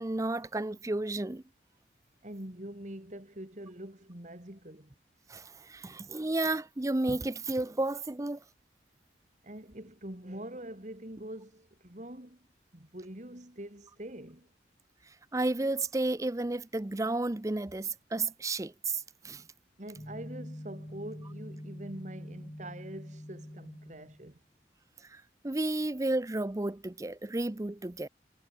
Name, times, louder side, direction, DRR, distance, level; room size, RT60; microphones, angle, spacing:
voice 1, 0.0-1.4 5.3-5.4 5.7-8.4 15.3-19.0 19.2-19.4 25.4-28.1, right 2 dB, 20° right, 0.5 m, -32 dB
voice 2, 2.2-4.9 9.4-12.5 12.7-14.5 19.8-24.4, right 1 dB, 45° right, 2.9 m, -44 dB
sound 1, 20.0-24.3, equal, 20° left, 1.5 m, -45 dB
head